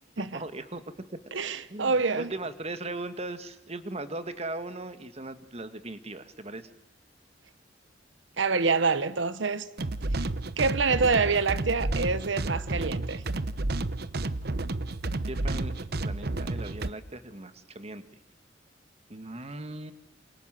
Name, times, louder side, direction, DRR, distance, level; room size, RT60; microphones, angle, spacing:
voice 1, 0.3-0.8 1.7-6.6 11.0-11.2 15.3-18.2 19.1-19.9, right 2 dB, 35° right, 1.8 m, -38 dB
voice 2, 1.3-2.3 8.4-9.7 10.1-10.3 10.6-13.2, right 4 dB, 90° right, 1.0 m, -26 dB
sound 1, 9.8-16.9, right 2 dB, 60° right, 1.0 m, -31 dB
28.5 x 27.5 x 7.7 m
head